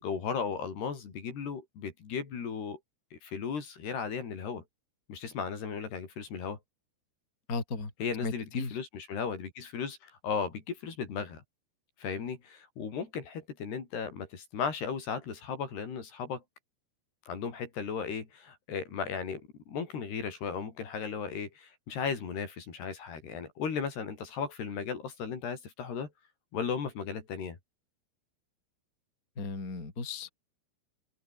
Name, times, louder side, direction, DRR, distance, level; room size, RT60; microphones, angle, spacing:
voice 1, 0.0-2.8 3.1-4.6 5.1-6.6 8.0-11.4 12.0-16.4 17.3-26.1 26.5-27.6, left 6 dB, 55° left, 6.0 m, -36 dB
voice 2, 7.5-7.9 8.2-8.8 29.4-30.3, left 3 dB, 20° left, 3.8 m, -35 dB
open air
omnidirectional pair, 5.6 m